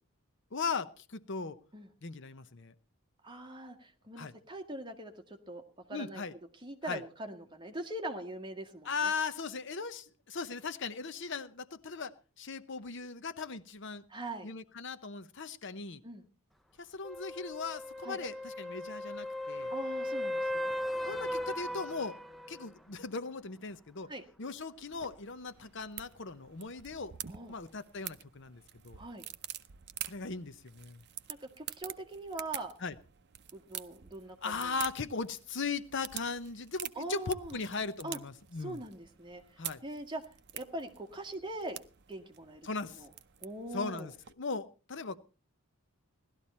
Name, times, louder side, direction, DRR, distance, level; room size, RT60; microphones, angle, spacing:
voice 1, 0.5-1.6 2.0-2.7 4.2-4.3 5.9-6.3 6.8-7.0 8.9-14.0 14.4-16.0 16.8-19.7 21.1-22.2 22.5-24.1 24.4-27.1 27.5-29.0 30.0-31.0 32.8-32.9 34.4-38.8 39.6-39.8 42.6-43.0 43.7-44.1 44.4-45.2, left 4 dB, 55° left, 13 dB, 0.8 m, -38 dB
voice 2, 3.2-5.6 5.9-6.2 6.6-9.1 14.1-14.5 16.0-16.2 18.0-18.2 19.7-20.7 24.1-24.2 27.3-27.6 29.0-29.2 31.4-32.7 33.5-34.8 36.9-37.6 38.0-38.2 38.6-40.2 40.5-41.8 42.1-43.1 43.4-44.1, right 1 dB, 20° right, 3 dB, 1.7 m, -42 dB
sound 1, 17.0-22.7 26.8-26.9, left 1 dB, ahead, 0.7 m, -37 dB
sound 2, 24.9-44.3, right 12 dB, 50° right, 0.7 m, -47 dB
17.5 x 12.5 x 4.3 m, 0.35 s
head